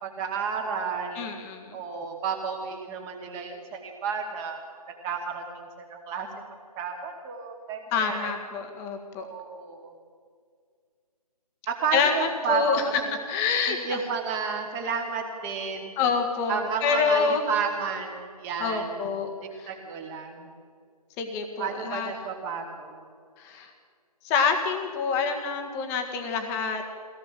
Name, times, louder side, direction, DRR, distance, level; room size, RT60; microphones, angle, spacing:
voice 1, 0.0-1.3 1.7-4.6 5.0-6.3 6.8-8.3 9.2-9.9 11.7-13.2 13.7-15.9 16.5-19.1 19.4-20.5 21.6-23.0, right 6 dB, 15° right, 2 dB, 2.3 m, -32 dB
voice 2, 1.2-1.8 7.9-9.3 11.9-14.0 16.0-17.4 18.6-19.3 19.6-19.7 21.2-22.1 23.4-23.7 24.2-26.9, left 5 dB, 15° left, 4 dB, 1.8 m, -27 dB
23.5 x 17.5 x 7.5 m, 2.1 s
figure-of-eight pair, 160°, 21 cm